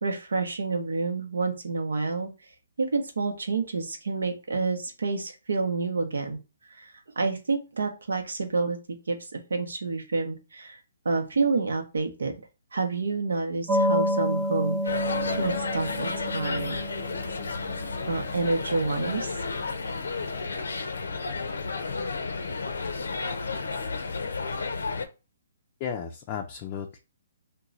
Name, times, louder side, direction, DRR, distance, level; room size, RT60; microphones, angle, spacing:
voice 1, 0.0-2.3 2.8-6.4 6.7-8.8 9.1-10.8 11.0-12.3 12.7-14.9 15.3-16.8 18.1-19.3, right 3 dB, 80° right, 5 dB, 0.8 m, -28 dB
sound 1, 13.7-19.9, equal, 15° right, 0.7 m, -30 dB
sound 2, 14.8-25.0, left 4 dB, 85° left, 0.5 m, -32 dB
voice 2, 25.8-27.0, left 7 dB, 30° left, 2 dB, 0.4 m, -34 dB
2.9 x 2.2 x 3.7 m, 0.30 s
hypercardioid pair, 145°, 0 cm